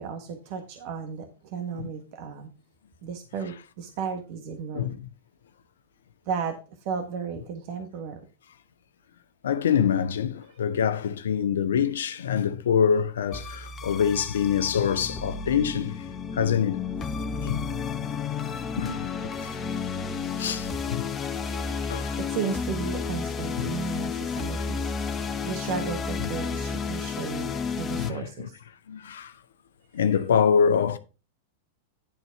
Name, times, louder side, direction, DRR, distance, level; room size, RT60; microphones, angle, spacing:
voice 1, 0.0-2.5 3.0-5.0 6.2-8.2 22.2-27.5 27.8-28.6, right 6 dB, 55° right, 1.4 m, -34 dB
voice 2, 9.4-15.9 16.3-16.8 17.4-17.7 18.8-19.5 20.4-21.1 21.5-21.6 21.9-22.2 23.6-23.7 28.0-28.2 28.9-29.3 29.9-31.0, left 7 dB, 75° left, 0.8 m, -25 dB
sound 1, 13.3-28.1, left 5 dB, 25° left, 1.0 m, -32 dB
10.5 x 4.1 x 5.8 m
hypercardioid pair, 100°, 0 cm